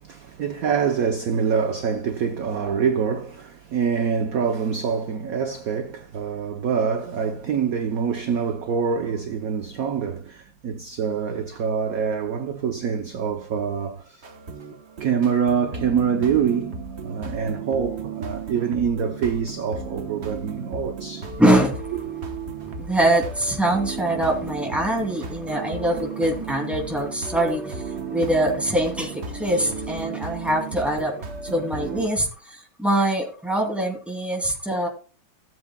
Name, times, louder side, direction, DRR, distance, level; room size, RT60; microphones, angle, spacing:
voice 1, 0.0-14.2 15.0-21.3, right 6 dB, 55° right, 1.1 m, -25 dB
sound 1, 14.2-32.1, right 5 dB, 40° right, 1.3 m, -34 dB
voice 2, 21.4-21.8 22.8-34.9, right 1 dB, ahead, 2.5 m, -23 dB
17.0 x 7.9 x 2.3 m
omnidirectional pair, 2.1 m